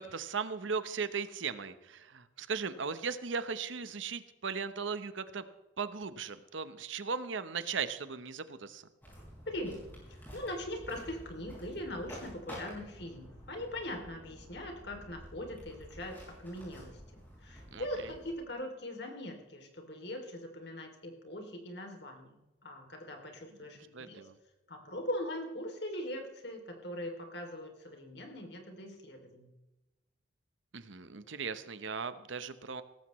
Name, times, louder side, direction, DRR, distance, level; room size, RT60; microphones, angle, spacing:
voice 1, 0.0-5.4 5.8-8.8 17.7-17.9 23.9-24.4 30.7-32.8, right 5 dB, 80° right, 12 dB, 0.9 m, -37 dB
sound 1, 9.0-18.3, equal, 10° left, 5.4 m, -50 dB
voice 2, 9.5-9.8 10.1-17.0 17.4-24.3 24.7-29.5, left 1 dB, 60° left, 3 dB, 2.8 m, -41 dB
17.0 x 15.0 x 3.1 m, 1.0 s
head